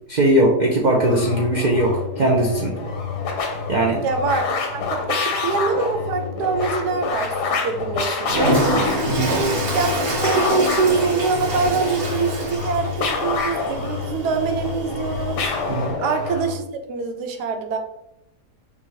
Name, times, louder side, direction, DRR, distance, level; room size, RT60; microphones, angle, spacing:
voice 1, 0.1-2.8 3.7-4.0 9.1-9.3 15.7-15.9, right 1 dB, 60° right, -2 dB, 0.4 m, -19 dB
sound 1, 0.9-16.6, left 4 dB, 90° left, 1.4 m, -27 dB
voice 2, 4.0-8.6 9.2-9.9 10.2-15.5 16.0-17.8, right 5 dB, 85° right, 5 dB, 1.2 m, -24 dB
Toilet flush, 8.2-15.8, equal, 45° right, 1.0 m, -26 dB
5.8 x 2.7 x 3.1 m, 0.82 s
omnidirectional pair, 1.7 m